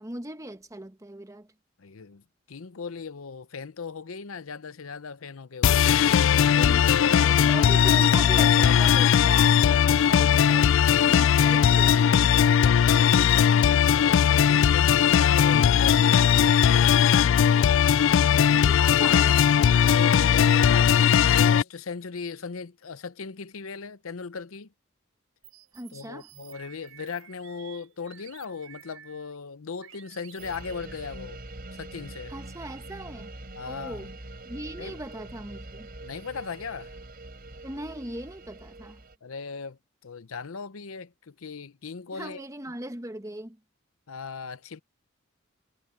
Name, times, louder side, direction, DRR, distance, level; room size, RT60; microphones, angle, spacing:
voice 1, 0.0-1.5 6.5-12.3 18.5-19.5 25.7-26.3 32.3-33.3 33.6-34.1 34.4-35.9 37.6-39.0 42.1-43.6, right 1 dB, 15° right, 1.2 m, -39 dB
voice 2, 1.8-2.2 2.5-7.4 12.6-17.4 19.8-24.7 25.9-31.4 31.8-32.3 33.5-34.1 34.8-35.0 36.0-36.9 39.2-42.4 44.1-44.8, left 5 dB, 85° left, 0.7 m, -38 dB
sound 1, 5.6-21.6, left 8 dB, 65° left, 0.3 m, -19 dB
sound 2, 25.4-29.4 29.8-31.1, right 11 dB, 85° right, 5.3 m, -52 dB
sound 3, 30.4-39.2, right 2 dB, 45° right, 4.2 m, -43 dB
head